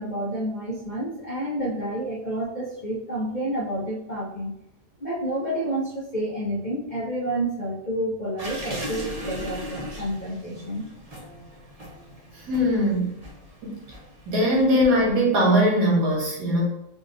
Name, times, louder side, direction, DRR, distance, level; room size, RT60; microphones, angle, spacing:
voice 1, 0.0-4.5 5.0-10.9, right 1 dB, 35° left, -6 dB, 0.8 m, -29 dB
sound 1, 8.4-14.9, equal, 35° right, 0.6 m, -38 dB
voice 2, 12.5-13.1 13.6-13.8 14.3-16.6, equal, 90° right, -3 dB, 1.9 m, -21 dB
3.9 x 2.5 x 3.8 m, 0.82 s
omnidirectional pair, 1.7 m